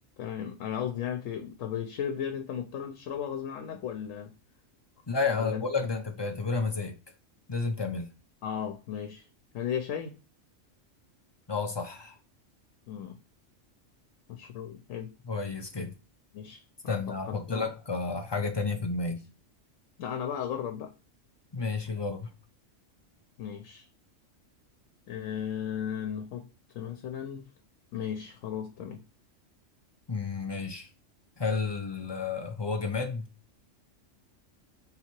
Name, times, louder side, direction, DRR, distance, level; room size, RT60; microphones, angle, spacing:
voice 1, 0.2-4.3 5.3-5.6 8.4-9.3 9.5-10.2 12.9-13.2 14.3-15.1 16.3-17.7 20.0-20.9 23.4-23.9 25.1-26.5 26.7-27.4 27.9-29.0, left 8 dB, 90° left, 1.0 m, -35 dB
voice 2, 5.1-7.0 7.5-8.1 11.5-12.2 15.2-15.9 16.9-19.3 21.5-22.3 30.1-30.9 31.4-33.3, left 4 dB, 45° left, 0.3 m, -31 dB
3.7 x 2.8 x 4.4 m
omnidirectional pair, 1.3 m